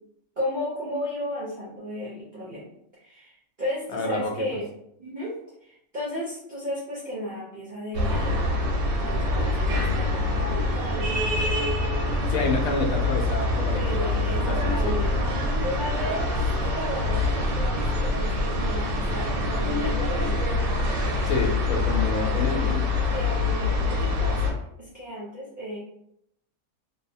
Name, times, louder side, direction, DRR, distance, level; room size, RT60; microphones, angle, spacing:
voice 1, 0.4-2.7 3.0-4.7 5.0-8.5 9.0-11.2 13.7-20.4 23.1-25.8, equal, 50° right, -7 dB, 0.6 m, -34 dB
voice 2, 3.9-4.6 12.3-14.9 21.3-22.8, left 2 dB, 75° left, 1 dB, 1.0 m, -29 dB
sound 1, 7.9-24.5, left 2 dB, 80° right, 1.1 m, -25 dB
2.8 x 2.0 x 2.6 m, 0.76 s
omnidirectional pair, 1.5 m